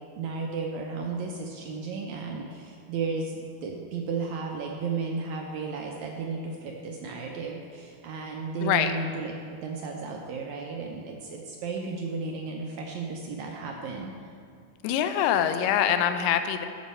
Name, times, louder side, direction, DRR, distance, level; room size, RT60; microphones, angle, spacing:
voice 1, 0.2-14.3, right 4 dB, 80° right, 1 dB, 1.7 m, -34 dB
voice 2, 8.6-8.9 14.8-16.7, left 9 dB, 85° left, 9 dB, 2.2 m, -24 dB
12.5 x 6.2 x 4.2 m, 2.3 s
omnidirectional pair, 3.9 m